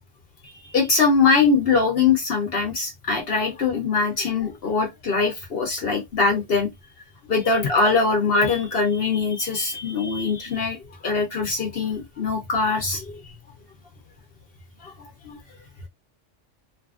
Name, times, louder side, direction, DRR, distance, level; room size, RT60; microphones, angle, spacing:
voice 1, 0.6-6.7 7.3-10.8 11.0-13.2 14.8-14.9 15.2-15.4, left 4 dB, 55° left, 0.9 m, -22 dB
2.7 x 2.5 x 2.4 m
omnidirectional pair, 1.3 m